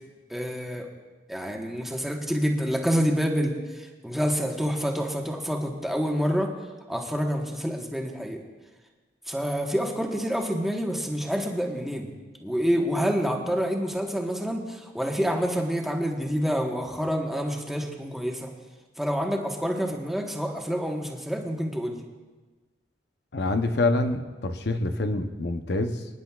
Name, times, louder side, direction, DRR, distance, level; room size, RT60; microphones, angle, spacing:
voice 1, 0.3-0.9 1.3-6.5 6.9-8.4 9.3-12.1 12.4-18.5 19.0-22.0, equal, ahead, 0 dB, 1.2 m, -27 dB
voice 2, 23.3-26.1, left 2 dB, 65° left, 6 dB, 0.7 m, -26 dB
25.5 x 10.0 x 2.4 m, 1.3 s
head